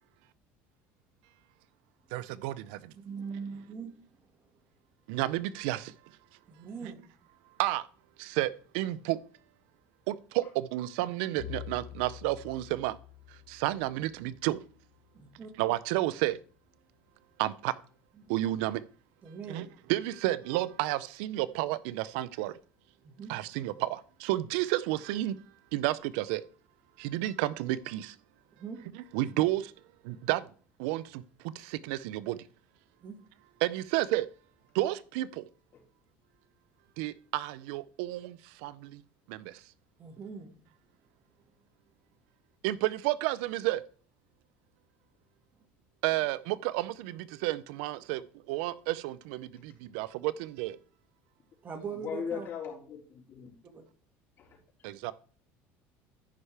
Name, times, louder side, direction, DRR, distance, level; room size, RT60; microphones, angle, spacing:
voice 1, 2.1-2.9 5.1-5.9 6.8-6.9 7.6-7.9 8.2-9.2 10.1-13.0 13.3-14.6 15.6-16.4 17.4-17.7 18.3-18.8 19.5-22.6 23.3-25.4 25.7-26.4 27.0-28.2 29.1-29.7 30.0-30.5 30.8-32.4 33.6-34.3 34.7-35.5 37.0-39.0 39.3-39.6 42.6-43.8 46.0-50.8 54.8-55.1, right 16 dB, 85° right, 0.5 m, -31 dB
voice 2, 2.9-4.3 6.5-7.0 15.1-15.5 18.2-18.3 19.2-19.7 23.0-23.3 28.5-28.8 33.0-33.2 40.0-40.6 51.6-52.5 53.7-53.8, right 6 dB, 30° right, 1.8 m, -42 dB
Bowed string instrument, 11.4-15.6, left 14 dB, 65° left, 0.9 m, -47 dB
voice 3, 52.0-53.5 54.4-54.6, left 7 dB, 40° left, 4.2 m, -38 dB
14.5 x 5.5 x 3.3 m
cardioid pair, 125°, 6 cm